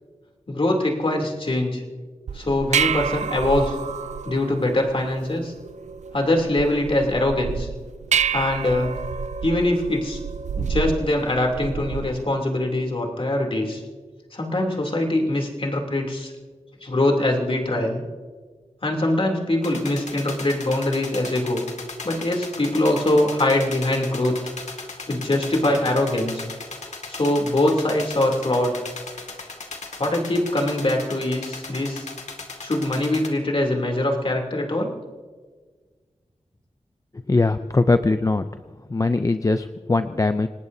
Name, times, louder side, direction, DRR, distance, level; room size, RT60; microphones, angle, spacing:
voice 1, 0.5-1.8 2.3-3.8 4.2-5.5 6.1-7.7 8.3-8.9 9.4-10.2 10.6-13.8 14.3-16.3 16.8-18.0 18.8-21.6 22.0-24.3 25.1-26.4 27.1-28.7 30.0-32.1 32.6-34.9, left 1 dB, 50° left, 1 dB, 3.0 m, -23 dB
sound 1, 2.3-12.2, right 7 dB, 85° right, 0.4 m, -29 dB
sound 2, 19.6-33.3, left 3 dB, 85° left, 2.1 m, -37 dB
voice 2, 37.3-38.4 38.9-40.5, left 3 dB, 30° left, 9 dB, 0.5 m, -21 dB
27.5 x 19.0 x 2.8 m, 1.5 s
wide cardioid pair, 75°, 12 cm